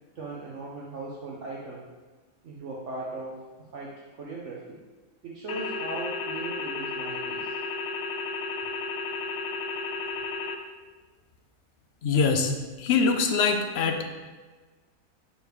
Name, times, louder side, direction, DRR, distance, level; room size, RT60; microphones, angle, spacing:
voice 1, 0.1-1.9 2.4-4.8 5.2-7.6, right 2 dB, 60° right, -4 dB, 1.1 m, -38 dB
sound 1, 5.5-10.6, left 4 dB, 80° left, 1.1 m, -33 dB
voice 2, 12.0-12.5 12.8-14.0, left 5 dB, 60° left, 5 dB, 0.8 m, -23 dB
6.7 x 3.2 x 4.8 m, 1.4 s
omnidirectional pair, 1.5 m